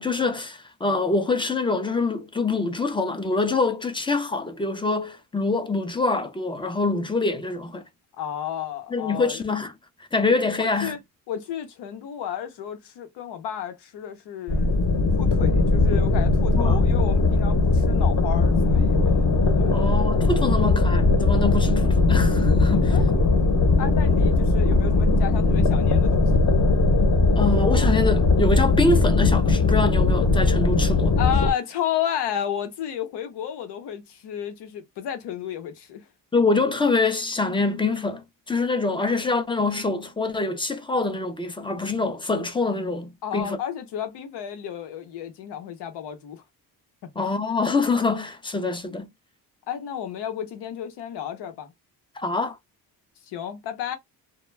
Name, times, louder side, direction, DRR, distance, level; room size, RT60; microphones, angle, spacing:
voice 1, 0.0-7.8 8.9-9.7 10.1-11.0 16.5-16.8 19.7-23.0 27.4-31.2 36.3-43.6 47.2-49.1 52.2-52.6, left 3 dB, 15° left, 0.4 m, -25 dB
voice 2, 8.2-9.4 10.6-11.0 11.3-14.7 15.2-19.9 22.9-23.4 23.8-26.3 31.2-36.1 43.2-46.4 47.1-47.2 49.7-51.7 53.2-54.0, left 9 dB, 85° left, 0.9 m, -32 dB
sound 1, 14.5-31.5, left 3 dB, 45° left, 0.9 m, -19 dB
2.2 x 2.2 x 3.2 m
cardioid pair, 115°, 39 cm